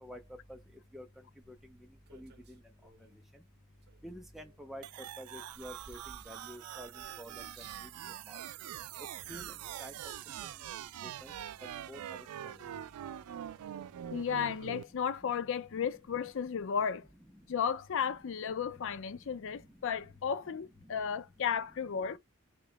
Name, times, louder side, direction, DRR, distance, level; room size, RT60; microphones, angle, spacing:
sound 1, 1.4-3.2 3.8-4.9 5.3-7.9 8.8-8.9, right 5 dB, 50° right, 0.7 m, -59 dB
voice 1, 4.0-4.8 5.2-6.0 6.3-6.9 7.2-7.4 7.8-7.9 8.3-8.4 9.3-9.5 9.8-9.9 11.2-11.3 11.9-12.2, equal, ahead, 0.4 m, -47 dB
sound 2, 4.8-14.8, right 11 dB, 85° right, 0.3 m, -44 dB
voice 2, 14.1-17.1 17.5-22.2, left 7 dB, 60° left, 0.4 m, -34 dB
3.0 x 2.9 x 3.3 m
head